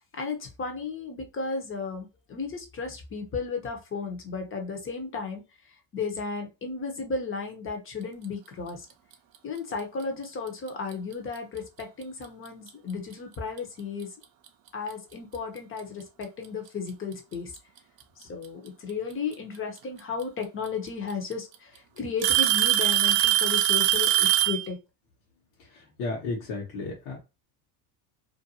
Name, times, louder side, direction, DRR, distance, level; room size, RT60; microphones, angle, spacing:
voice 1, 0.1-5.4 5.9-8.9 9.4-14.1 14.7-17.5 18.2-24.8, left 4 dB, 25° left, 4 dB, 0.8 m, -34 dB
Alarm / Tick-tock, 10.7-10.9 11.8-11.9 12.7-12.8 14.5-14.6 15.8-15.9 17.1-17.6 19.3-19.4 20.7-20.8 21.1-21.5 22.2-24.6, right 13 dB, 50° right, 0.5 m, -22 dB
voice 2, 25.7-27.2, left 3 dB, 65° left, -3 dB, 1.1 m, -33 dB
2.6 x 2.2 x 2.8 m, 0.27 s
supercardioid pair, 105°, 46 cm